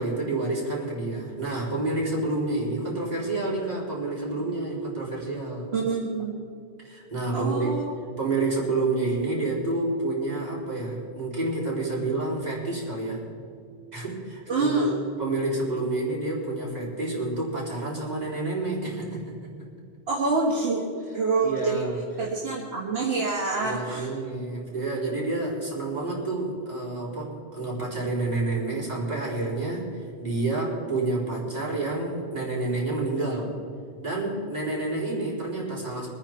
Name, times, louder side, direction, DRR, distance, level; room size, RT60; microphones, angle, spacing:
voice 1, 0.0-5.7 6.8-7.7 8.2-13.2 13.9-14.9 15.2-19.4 21.4-22.0 23.6-33.5 34.0-36.1, right 2 dB, 35° right, -6 dB, 4.2 m, -29 dB
voice 2, 5.7-6.4 7.3-8.0 14.5-15.0 20.1-20.8 21.1-21.9 22.2-24.1, right 3 dB, 60° right, -4 dB, 1.9 m, -26 dB
24.0 x 9.6 x 4.5 m, 2.4 s
omnidirectional pair, 1.2 m